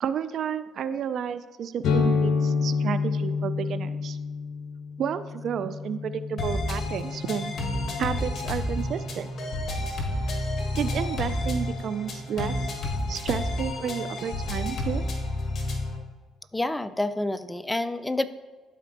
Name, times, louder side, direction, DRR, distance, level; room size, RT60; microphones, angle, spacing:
voice 1, 0.0-4.2 5.0-7.5 8.0-9.3 10.7-12.6 13.1-15.1, right 8 dB, 60° right, 13 dB, 0.3 m, -31 dB
sound 1, 1.8-9.4, left 5 dB, 70° left, 0.7 m, -29 dB
sound 2, 6.4-16.0, left 1 dB, 50° left, 1.3 m, -30 dB
voice 2, 16.5-18.3, left 2 dB, 10° left, 13 dB, 0.4 m, -28 dB
12.0 x 4.3 x 2.6 m, 1.4 s
supercardioid pair, 70°, 0 cm